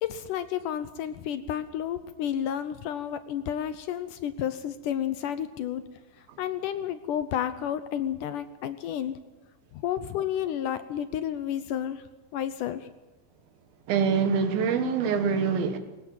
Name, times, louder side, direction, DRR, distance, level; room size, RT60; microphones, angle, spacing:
voice 1, 0.0-5.8 6.2-9.2 9.7-12.0 12.3-12.9, left 10 dB, 75° left, 2.1 m, -31 dB
voice 2, 13.9-15.8, right 6 dB, 80° right, 3.3 m, -24 dB
21.5 x 18.5 x 7.5 m
omnidirectional pair, 4.2 m